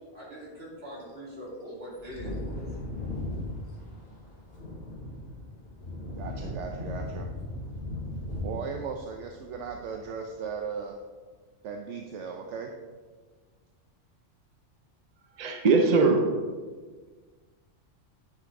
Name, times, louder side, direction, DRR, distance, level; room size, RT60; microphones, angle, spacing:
voice 1, 0.1-2.6, equal, 55° right, -5 dB, 2.5 m, -42 dB
Wind / Thunder, 1.9-10.2 10.5-10.6, left 1 dB, 55° left, 2.1 m, -37 dB
voice 2, 6.1-7.3 8.4-11.0 11.6-12.7, right 6 dB, 75° right, 3 dB, 0.9 m, -37 dB
voice 3, 15.4-16.3, right 4 dB, 40° right, 3 dB, 0.7 m, -21 dB
9.3 x 5.8 x 3.6 m, 1.4 s
omnidirectional pair, 1.2 m